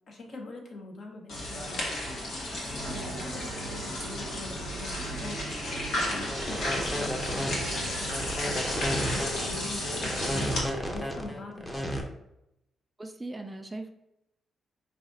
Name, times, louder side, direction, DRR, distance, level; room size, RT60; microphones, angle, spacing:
voice 1, 0.1-1.9 2.4-5.4 5.9-11.9, left 2 dB, 55° left, 1 dB, 0.8 m, -43 dB
sound 1, 1.3-10.6, left 1 dB, 75° left, 1.1 m, -33 dB
sound 2, 2.8-10.8, right 5 dB, 85° right, 0.4 m, -43 dB
sound 3, 6.3-12.0, equal, 10° left, 0.7 m, -33 dB
voice 2, 13.0-13.9, right 2 dB, 20° right, 6 dB, 0.3 m, -39 dB
4.9 x 2.4 x 2.6 m, 0.85 s
cardioid pair, 80°, 0 cm